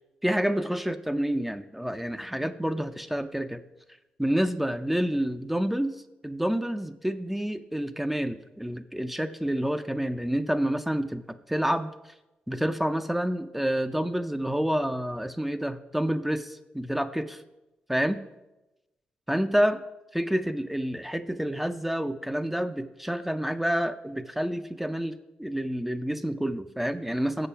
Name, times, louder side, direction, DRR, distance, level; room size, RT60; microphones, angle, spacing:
voice 1, 0.2-3.6 4.2-6.0 6.2-11.9 12.5-17.4 17.9-18.2 19.3-19.8 20.1-27.5, equal, 5° right, 10 dB, 0.4 m, -28 dB
6.9 x 6.7 x 5.7 m, 0.98 s
cardioid pair, 80°, 3 cm